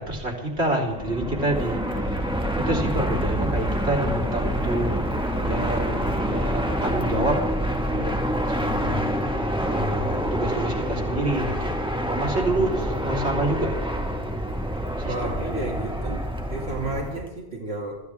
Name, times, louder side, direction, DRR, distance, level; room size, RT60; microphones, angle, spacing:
voice 1, 0.0-1.8 2.1-2.2 2.6-4.9 5.4-7.4 8.5-9.3 9.6-11.8 12.1-13.7 15.0-15.5, right 1 dB, 90° right, 1 dB, 3.7 m, -27 dB
Fixed-wing aircraft airplane, 0.9-17.3, equal, 5° right, 1.9 m, -27 dB
voice 2, 7.9-8.2 15.1-16.2 16.5-18.0, right 2 dB, 70° right, -3 dB, 2.7 m, -32 dB
25.5 x 14.5 x 3.6 m, 1.1 s
omnidirectional pair, 1.1 m